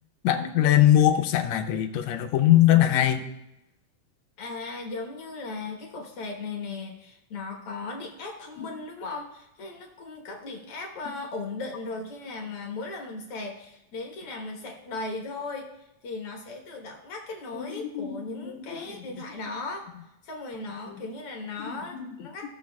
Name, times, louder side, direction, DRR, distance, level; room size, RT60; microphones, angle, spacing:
voice 1, 0.2-3.3 8.6-8.7 17.5-18.7 20.9-21.0 21.6-22.1, left 12 dB, 80° left, 7 dB, 1.8 m, -22 dB
voice 2, 4.4-19.9 20.2-22.5, left 3 dB, 55° left, 0 dB, 1.9 m, -37 dB
16.5 x 7.1 x 2.3 m, 0.87 s
omnidirectional pair, 3.5 m